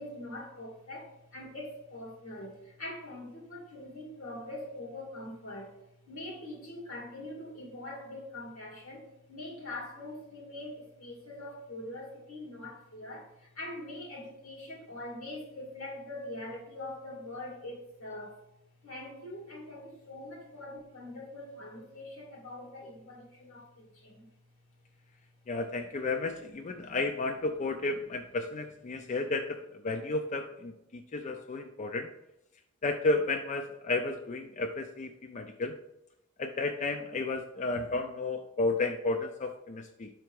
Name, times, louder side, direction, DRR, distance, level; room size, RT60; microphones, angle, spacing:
voice 1, 0.0-5.8 6.1-18.4 18.8-24.3 26.9-27.0, left 1 dB, 80° left, -3 dB, 2.5 m, -43 dB
voice 2, 25.5-32.1 32.8-35.8 36.4-40.1, left 3 dB, 35° left, 6 dB, 0.4 m, -32 dB
5.9 x 4.5 x 4.6 m, 0.84 s
head